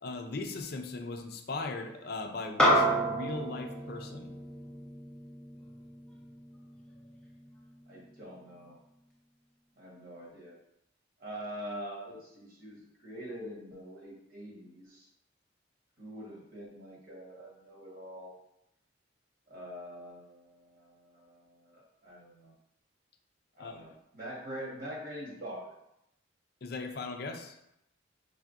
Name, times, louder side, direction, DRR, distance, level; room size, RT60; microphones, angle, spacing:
voice 1, 0.0-4.3 23.6-23.7 26.6-27.6, left 3 dB, 50° left, 5 dB, 0.4 m, -38 dB
sound 1, 2.6-7.2, equal, 5° left, 0.6 m, -30 dB
voice 2, 7.9-8.8 9.8-10.5 11.2-15.1 16.0-18.3 19.5-22.5 23.6-25.7, equal, 45° right, -4 dB, 1.3 m, -44 dB
5.6 x 3.3 x 2.5 m, 0.81 s
head